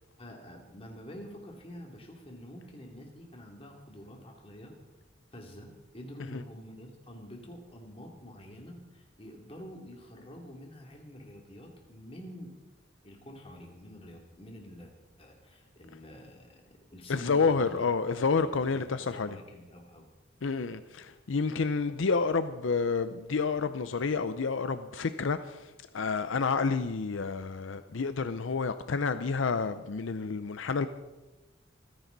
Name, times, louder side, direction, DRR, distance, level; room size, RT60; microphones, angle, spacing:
voice 1, 0.2-4.8 5.3-12.5 13.0-16.6 16.9-17.9 18.4-20.1, equal, 30° left, 2.8 m, -47 dB
voice 2, 17.1-19.4 20.4-25.7 25.9-30.9, left 4 dB, 80° left, 0.6 m, -29 dB
26.5 x 10.5 x 4.0 m
head